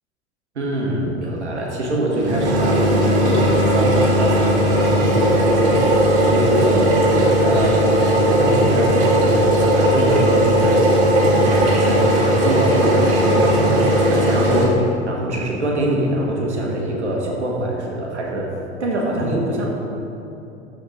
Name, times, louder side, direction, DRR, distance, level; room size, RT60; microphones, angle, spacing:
voice 1, 0.5-7.1 7.4-7.8 8.3-10.8 11.3-18.5 18.8-19.7, right 1 dB, 80° right, -1 dB, 1.5 m, -24 dB
sound 1, 2.1-14.7, right 1 dB, 55° right, 2.0 m, -17 dB
13.5 x 4.5 x 4.0 m, 2.8 s
figure-of-eight pair, 80°, 34 cm